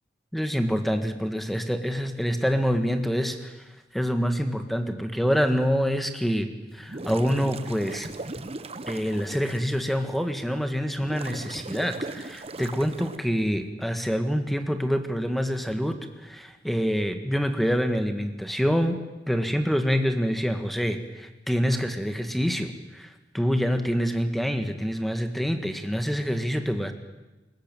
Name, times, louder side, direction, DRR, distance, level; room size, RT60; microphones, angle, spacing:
voice 1, 0.3-3.5 3.9-8.1 8.9-19.0 19.3-23.1 23.3-26.9, equal, ahead, 7 dB, 1.7 m, -26 dB
sound 1, 6.8-9.6 10.2-10.3 11.0-13.2, right 2 dB, 35° right, 1.0 m, -38 dB
21.5 x 19.5 x 9.1 m, 1.1 s
head